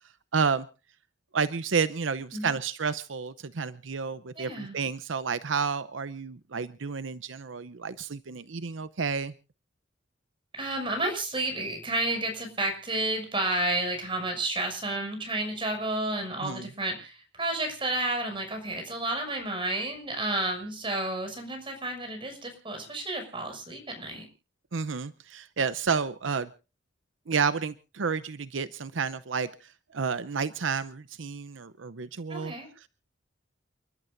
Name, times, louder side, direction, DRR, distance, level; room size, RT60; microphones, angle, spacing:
voice 1, 0.3-0.7 1.3-9.3 16.4-16.7 24.7-26.5 27.3-32.9, right 5 dB, 85° right, 14 dB, 0.7 m, -30 dB
voice 2, 4.3-4.8 10.5-24.3 32.3-32.7, right 2 dB, 30° right, 4 dB, 6.3 m, -31 dB
29.5 x 12.0 x 2.6 m, 0.34 s
head